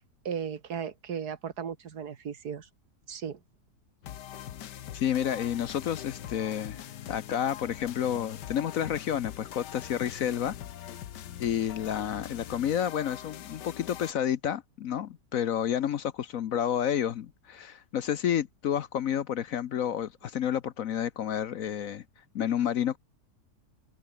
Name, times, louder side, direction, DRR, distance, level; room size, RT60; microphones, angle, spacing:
voice 1, 0.3-2.7 3.1-3.4, right 7 dB, 65° right, 2.0 m, -36 dB
sound 1, 4.0-14.1, left 11 dB, 80° left, 1.6 m, -42 dB
voice 2, 4.9-6.8 7.1-10.5 10.9-11.0 11.4-22.0 22.3-23.0, left 9 dB, 60° left, 1.1 m, -30 dB
omnidirectional pair, 1.8 m